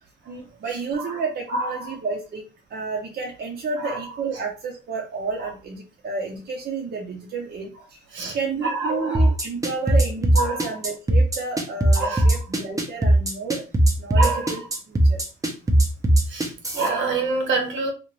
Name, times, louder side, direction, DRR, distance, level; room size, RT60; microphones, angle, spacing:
voice 1, 0.3-2.4 2.7-8.0 8.3-13.6 14.0-14.6 14.9-15.2, right 4 dB, 55° right, 0.7 m, -31 dB
voice 2, 1.5-2.0 3.8-4.0 8.1-8.4 8.6-9.3 10.4-10.7 11.9-12.4 14.2-14.6 16.3-17.9, right 3 dB, 75° right, 1.0 m, -26 dB
sound 1, 9.1-16.9, right 1 dB, 15° right, 0.7 m, -18 dB
2.7 x 2.5 x 3.1 m
cardioid pair, 90°, 20 cm